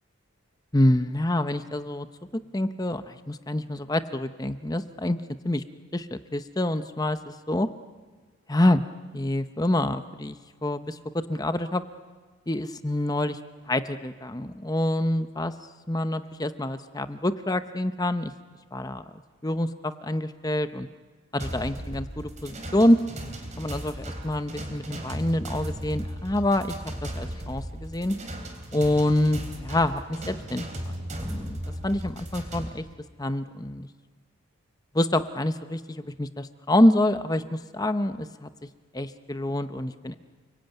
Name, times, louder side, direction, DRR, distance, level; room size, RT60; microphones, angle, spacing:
voice 1, 0.7-2.1 2.3-5.6 5.9-7.7 8.5-8.8 9.1-11.8 12.5-13.4 13.7-15.5 15.9-18.3 18.7-19.0 19.4-20.9 21.3-23.0 23.6-26.7 27.0-28.2 28.7-32.8 33.2-33.9 34.9-38.5 38.9-40.1, left 1 dB, 15° left, 10 dB, 0.8 m, -26 dB
sound 1, 21.4-32.7, right 1 dB, 35° right, 3.6 m, -36 dB
29.5 x 22.0 x 9.1 m, 1.4 s
head